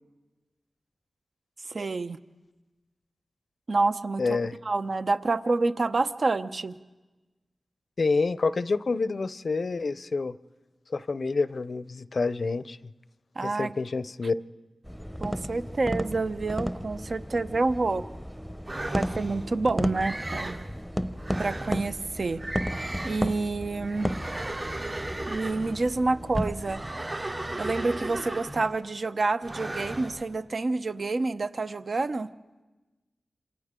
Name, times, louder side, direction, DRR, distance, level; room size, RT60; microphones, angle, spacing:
voice 1, 1.7-2.2 3.7-4.2 4.6-6.8 13.4-13.7 15.2-18.0 18.9-20.6 21.4-22.4 23.0-24.2 25.3-26.8 27.6-32.3, right 3 dB, 60° right, 11 dB, 0.8 m, -28 dB
voice 2, 4.2-4.5 8.0-10.3 10.9-12.8 13.4-14.4, left 4 dB, 65° left, 15 dB, 0.6 m, -28 dB
sound 1, 14.8-26.9, equal, 5° right, 0.8 m, -34 dB
sound 2, 18.7-19.5 19.9-20.7 21.2-21.8 22.4-23.4 23.9-25.8 26.6-28.8 29.4-30.2, right 1 dB, 40° right, 3.2 m, -35 dB
27.5 x 26.5 x 3.7 m, 1.2 s
cardioid pair, 50°, 0 cm